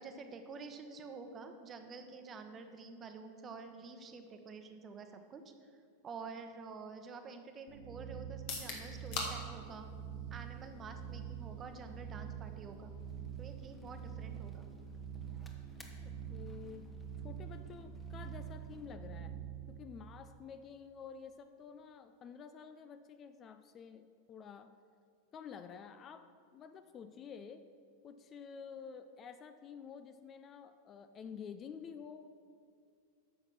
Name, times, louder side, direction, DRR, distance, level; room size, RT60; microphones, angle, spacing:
voice 1, 0.0-5.7 6.0-9.9 10.3-12.9 13.4-14.7, right 4 dB, 30° right, 6 dB, 0.9 m, -49 dB
sound 1, 7.7-19.8, right 8 dB, 60° right, 0.9 m, -46 dB
sound 2, 8.3-22.2, left 3 dB, 55° left, 1.7 m, -51 dB
sound 3, 13.0-18.9, left 2 dB, 15° left, 1.1 m, -63 dB
voice 2, 16.0-16.9 17.2-19.3 19.7-24.7 25.3-27.7 28.0-32.4, left 6 dB, 35° left, 10 dB, 0.4 m, -50 dB
9.2 x 5.8 x 5.9 m, 2.3 s
hypercardioid pair, 95°, 0 cm